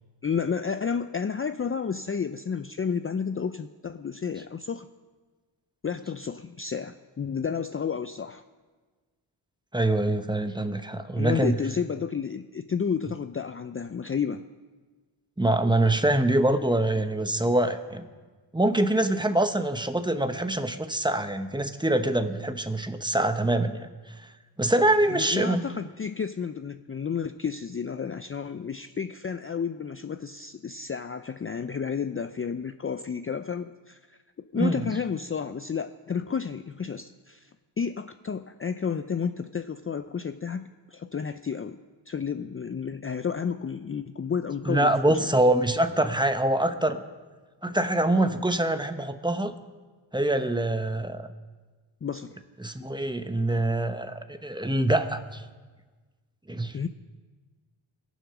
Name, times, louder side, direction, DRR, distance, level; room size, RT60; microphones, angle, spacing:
voice 1, 0.2-4.9 5.8-8.4 11.1-14.4 25.1-34.2 34.5-41.8 42.1-45.2 52.0-52.3 56.7-56.9, left 6 dB, 30° left, 10 dB, 0.5 m, -31 dB
voice 2, 9.7-11.5 15.4-18.1 18.5-24.1 24.6-25.7 34.5-34.8 44.7-47.0 47.6-49.5 50.1-51.3 52.6-55.4 56.5-56.8, right 1 dB, 10° right, 8 dB, 1.0 m, -25 dB
21.0 x 7.3 x 6.0 m, 1.4 s
cardioid pair, 60°, 48 cm